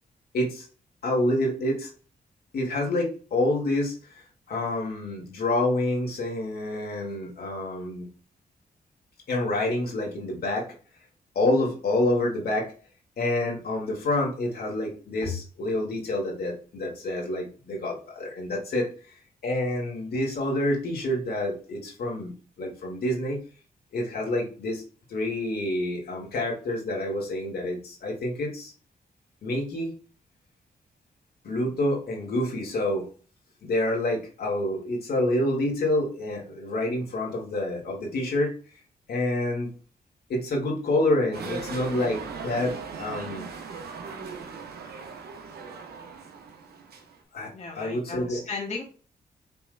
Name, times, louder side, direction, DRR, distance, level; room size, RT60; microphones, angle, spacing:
voice 1, 0.3-0.7 1.0-1.9 2.5-8.0 9.3-10.7 11.4-12.7 13.2-23.4 23.9-24.8 25.1-28.7 29.4-29.9 31.4-33.1 33.6-38.8 39.1-39.7 40.3-43.4 47.3-48.4, left 1 dB, 75° left, -1 dB, 2.0 m, -28 dB
sound 1, 41.3-47.2, right 5 dB, 80° right, 1.0 m, -39 dB
voice 2, 47.5-48.8, left 4 dB, 45° left, -2 dB, 1.4 m, -35 dB
5.6 x 3.5 x 2.2 m, 0.39 s
cardioid pair, 70°, 16 cm